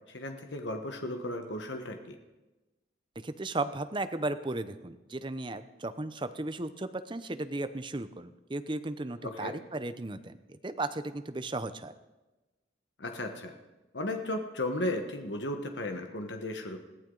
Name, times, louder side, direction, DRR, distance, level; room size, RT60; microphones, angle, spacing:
voice 1, 0.1-2.1 9.2-9.5 13.0-13.5 13.9-16.8, left 1 dB, 75° left, 5 dB, 1.3 m, -35 dB
voice 2, 3.2-11.9, right 2 dB, 25° right, 11 dB, 0.7 m, -35 dB
21.0 x 15.0 x 3.9 m, 1.1 s
head